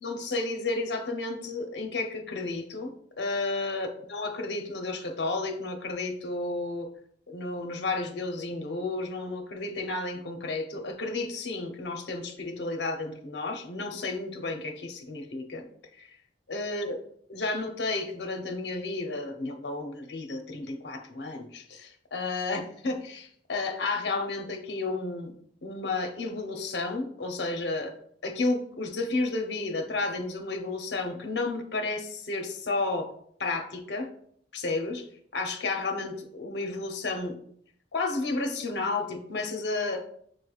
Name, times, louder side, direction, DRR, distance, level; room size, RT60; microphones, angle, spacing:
voice 1, 0.0-6.9 7.3-15.7 16.0-16.1 16.5-17.0 17.3-25.3 25.6-27.9 28.2-33.1 33.4-34.1 34.5-35.0 35.3-37.4 37.9-40.0, left 3 dB, 70° left, 4 dB, 0.7 m, -32 dB
6.4 x 3.2 x 2.3 m, 0.63 s
head